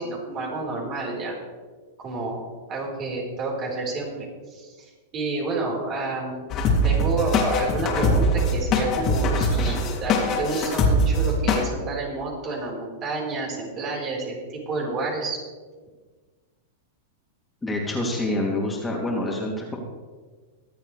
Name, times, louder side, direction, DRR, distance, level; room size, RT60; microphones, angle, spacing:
voice 1, 0.0-1.3 2.0-2.4 2.7-4.7 5.1-6.5 6.8-15.4, right 3 dB, 35° right, -2 dB, 4.4 m, -29 dB
sound 1, 6.5-11.6, left 1 dB, 40° left, 3.2 m, -22 dB
voice 2, 17.6-19.8, left 1 dB, 10° left, -2 dB, 2.8 m, -27 dB
24.0 x 8.3 x 3.4 m, 1.4 s
hypercardioid pair, 105°, 0 cm